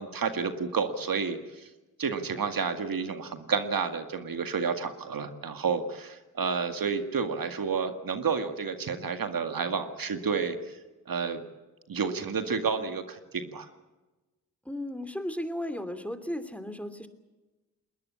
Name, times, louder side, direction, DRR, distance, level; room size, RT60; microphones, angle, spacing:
voice 1, 0.0-1.7 2.0-10.8 11.1-11.4 11.9-13.7, right 5 dB, 60° right, 8 dB, 2.0 m, -30 dB
voice 2, 14.6-17.1, left 1 dB, 5° left, 9 dB, 2.9 m, -35 dB
20.5 x 20.0 x 8.5 m, 1.2 s
supercardioid pair, 40°, 39 cm